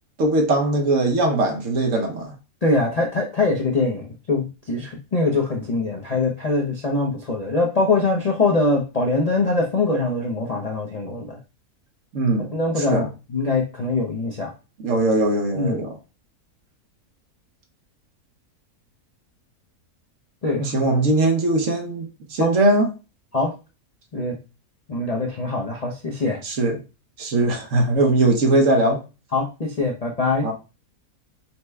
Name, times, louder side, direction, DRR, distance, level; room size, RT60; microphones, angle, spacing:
voice 1, 0.2-2.3 12.1-12.5 12.9-13.1 14.8-15.9 20.6-22.9 26.4-26.8 27.2-29.0 30.4-30.5, right 2 dB, 60° right, 1.1 m, -20 dB
voice 2, 2.6-11.4 12.5-14.5 15.6-15.8 20.4-20.7 22.4-22.5 23.3-23.5 24.1-24.4 24.9-26.4 29.3-30.5, left 3 dB, 45° left, 0.5 m, -23 dB
5.8 x 2.2 x 3.3 m
omnidirectional pair, 1.6 m